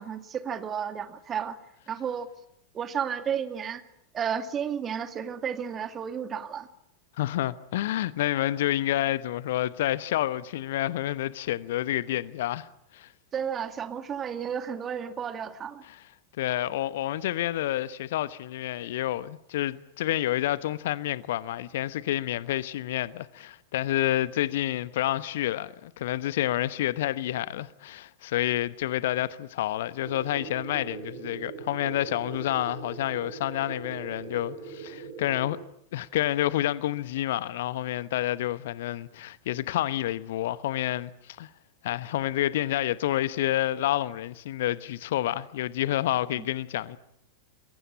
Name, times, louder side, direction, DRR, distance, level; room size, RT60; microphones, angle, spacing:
voice 1, 0.0-1.6 1.9-2.3 2.7-3.8 4.1-6.7 13.3-15.8 46.3-46.4, right 7 dB, 25° right, 2.3 m, -32 dB
voice 2, 7.2-12.7 12.9-13.1 15.8-16.0 16.4-35.6 35.9-41.5 41.8-47.0, left 13 dB, 55° left, 1.0 m, -29 dB
sound 1, 30.0-35.6, right 6 dB, 55° right, 5.2 m, -41 dB
28.0 x 22.5 x 8.7 m
figure-of-eight pair, 90°, 0 cm